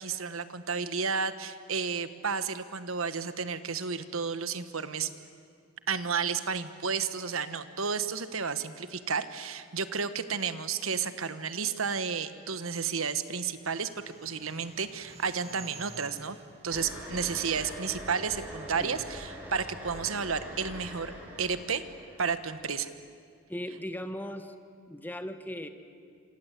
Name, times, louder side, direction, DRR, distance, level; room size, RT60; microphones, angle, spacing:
voice 1, 0.0-5.1 5.9-16.4 16.6-21.1 21.4-21.8 22.2-22.9, right 6 dB, 75° right, 12 dB, 1.4 m, -32 dB
sound 1, 12.9-18.3, right 4 dB, 30° right, 1.8 m, -51 dB
sound 2, 16.7-22.4, equal, 10° right, 7.2 m, -43 dB
voice 2, 23.5-24.5 24.9-25.7, equal, 10° left, 8 dB, 1.5 m, -38 dB
27.0 x 26.5 x 8.4 m, 2.3 s
head